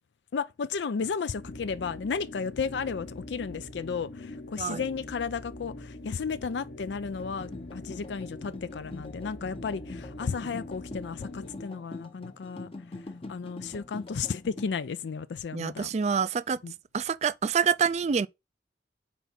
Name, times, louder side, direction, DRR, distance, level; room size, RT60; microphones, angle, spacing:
voice 1, 0.3-12.7 13.3-15.9 16.6-16.7, left 5 dB, 80° left, 0.4 m, -33 dB
sound 1, 1.3-11.7, left 1 dB, 60° left, 1.3 m, -44 dB
sound 2, 7.0-14.7, left 2 dB, 35° left, 0.7 m, -44 dB
voice 2, 15.5-16.6 16.9-18.3, right 6 dB, 40° right, 0.3 m, -27 dB
4.5 x 4.2 x 5.6 m
head